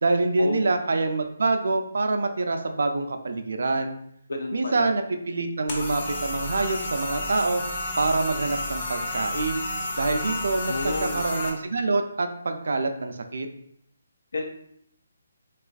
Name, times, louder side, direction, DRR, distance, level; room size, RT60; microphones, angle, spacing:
voice 1, 0.0-4.0 4.5-7.6 8.0-9.6 10.0-13.5, right 3 dB, 70° right, 6 dB, 0.3 m, -26 dB
voice 2, 4.3-4.9 10.7-11.3 14.3-14.4, left 2 dB, 75° left, 2 dB, 0.3 m, -30 dB
sound 1, 5.7-11.5, left 1 dB, 40° left, 0.7 m, -31 dB
3.1 x 2.3 x 2.3 m, 0.72 s
figure-of-eight pair, 150°, 0 cm